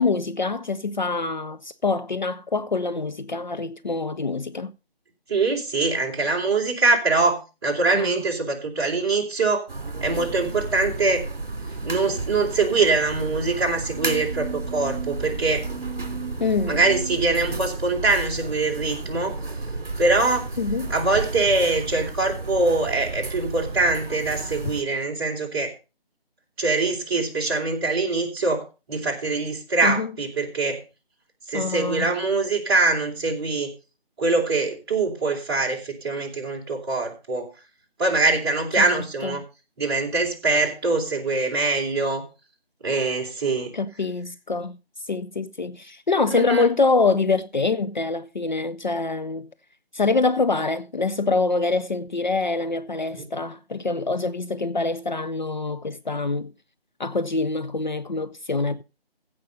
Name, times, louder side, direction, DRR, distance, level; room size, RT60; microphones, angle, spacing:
voice 1, 0.0-4.7 7.9-8.2 16.4-16.8 20.6-20.9 29.8-30.1 31.5-32.1 38.8-39.4 43.7-44.8 45.1-49.5 49.9-56.5 57.0-58.8, left 3 dB, 50° left, 0.6 m, -25 dB
voice 2, 5.3-9.7 10.0-11.2 11.8-15.6 16.7-19.4 20.0-20.5 20.9-25.7 26.6-30.8 31.5-33.7 34.2-37.5 38.0-39.4 39.8-42.2 42.8-43.7 46.3-46.6 53.1-53.2, right 3 dB, 25° right, 3.1 m, -23 dB
sound 1, 9.7-24.8, right 3 dB, 55° right, 2.8 m, -32 dB
15.5 x 5.4 x 5.4 m
figure-of-eight pair, 165°, 31 cm